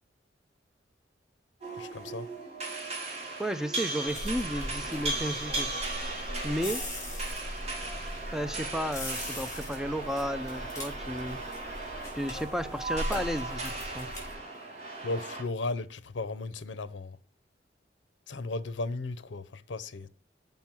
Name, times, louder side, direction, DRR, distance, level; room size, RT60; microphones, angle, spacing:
sound 1, 1.6-15.4, right 2 dB, 35° right, 2.6 m, -37 dB
voice 1, 1.8-2.3 15.0-17.2 18.3-20.1, left 2 dB, 75° left, 0.6 m, -35 dB
voice 2, 3.4-5.7 6.4-6.8 8.3-11.4 12.1-14.1, equal, 5° right, 0.5 m, -33 dB
sound 2, 4.1-14.3, left 1 dB, 15° left, 4.0 m, -39 dB
7.1 x 5.5 x 6.0 m
head